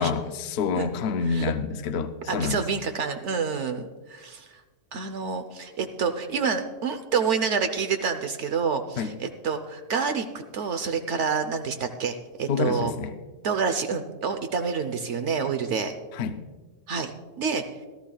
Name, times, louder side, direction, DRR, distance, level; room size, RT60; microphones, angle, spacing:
voice 1, 0.0-2.6 9.0-9.1 12.5-13.1 16.1-16.4, left 5 dB, 65° left, 9 dB, 0.8 m, -27 dB
voice 2, 2.3-4.6 4.9-10.3 10.5-12.9 13.4-15.9 16.9-17.1 17.4-17.6, right 6 dB, 75° right, 7 dB, 1.0 m, -28 dB
17.5 x 13.0 x 2.3 m, 1.3 s
omnidirectional pair, 1.3 m